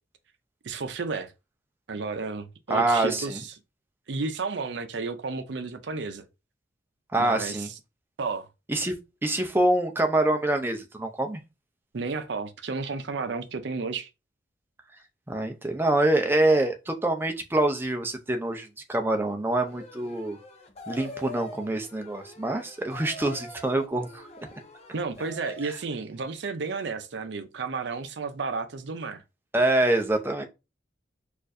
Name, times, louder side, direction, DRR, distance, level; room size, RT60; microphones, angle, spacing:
voice 1, 0.6-1.3 1.9-3.5 4.1-6.2 7.1-7.7 8.2-8.5 11.9-14.1 24.9-29.2, right 4 dB, 65° right, 0.5 m, -32 dB
voice 2, 2.7-3.4 7.1-7.7 8.7-9.0 9.2-11.4 15.3-20.4 20.9-24.2 29.5-30.4, right 1 dB, 10° right, 0.5 m, -25 dB
sound 1, 19.7-25.8, left 1 dB, 35° left, 0.6 m, -44 dB
4.3 x 2.5 x 2.5 m
head